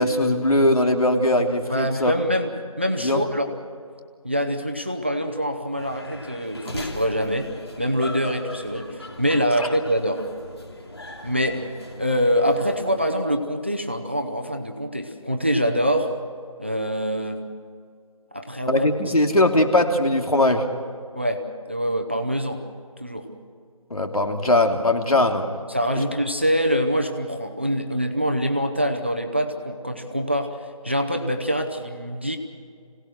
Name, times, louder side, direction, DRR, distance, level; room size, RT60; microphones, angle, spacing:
voice 1, 0.0-2.1 3.0-3.2 9.6-9.7 18.7-20.6 23.9-25.4 26.0-26.1, left 1 dB, 80° left, 3 dB, 3.0 m, -20 dB
voice 2, 1.7-3.5 4.2-10.2 11.2-16.1 16.6-17.4 18.3-19.1 21.1-22.6 23.0-23.3 25.7-32.4, equal, 20° right, 5 dB, 0.8 m, -25 dB
sound 1, 5.8-13.3, left 1 dB, 45° left, 2.8 m, -39 dB
26.5 x 18.0 x 6.2 m, 2.1 s
figure-of-eight pair, 180°, 18 cm